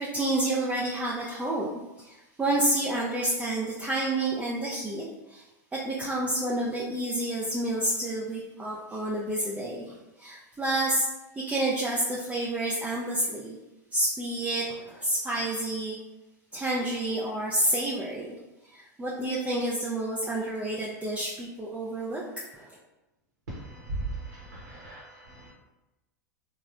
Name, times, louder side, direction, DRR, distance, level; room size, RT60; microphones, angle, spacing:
voice 1, 0.0-1.7 2.0-5.5 5.7-11.1 11.4-13.6 13.9-16.0 16.5-18.4 18.7-22.2 22.5-22.8, right 1 dB, 15° right, -5 dB, 0.4 m, -29 dB
voice 2, 23.5-25.5, right 2 dB, 75° right, -6 dB, 0.8 m, -37 dB
3.3 x 2.0 x 2.4 m, 1.0 s
hypercardioid pair, 90°, 10 cm